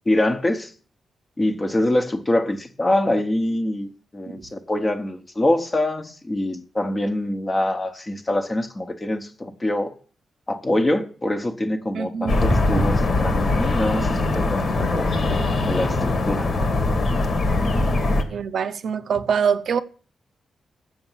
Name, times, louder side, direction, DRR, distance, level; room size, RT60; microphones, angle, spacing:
voice 1, 0.1-0.7 1.4-9.9 10.5-15.1 15.6-16.5, left 1 dB, 20° left, 1.0 m, -24 dB
voice 2, 11.9-12.9 18.3-19.8, right 6 dB, 65° right, 0.6 m, -24 dB
sound 1, 12.3-18.2, left 2 dB, 50° left, 1.4 m, -21 dB
7.9 x 7.0 x 7.3 m
wide cardioid pair, 145°, 0 cm